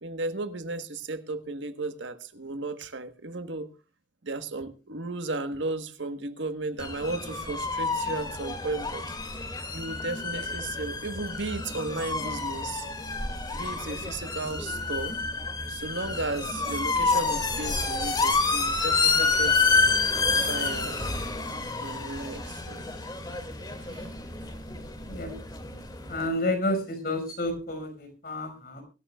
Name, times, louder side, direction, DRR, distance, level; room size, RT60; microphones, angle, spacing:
voice 1, 0.0-3.7 4.2-9.5 9.7-12.8 13.5-15.2 15.7-19.6 20.3-21.2 21.8-22.8 23.8-24.1, right 2 dB, 75° right, 1.4 m, -35 dB
sound 1, 6.8-26.3, left 4 dB, 20° left, 2.3 m, -29 dB
voice 2, 25.1-25.4 26.1-28.8, left 1 dB, 50° left, 5.5 m, -30 dB
23.5 x 13.5 x 2.4 m
head